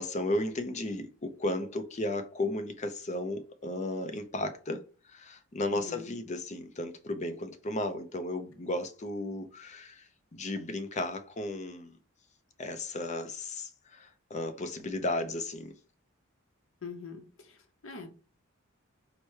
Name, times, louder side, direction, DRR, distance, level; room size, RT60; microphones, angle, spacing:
voice 1, 0.0-4.8 5.1-12.0 12.6-15.7, left 2 dB, 35° left, 0.5 m, -34 dB
voice 2, 5.7-6.1 16.8-18.1, left 5 dB, 65° left, 0.8 m, -44 dB
4.7 x 2.1 x 4.4 m
head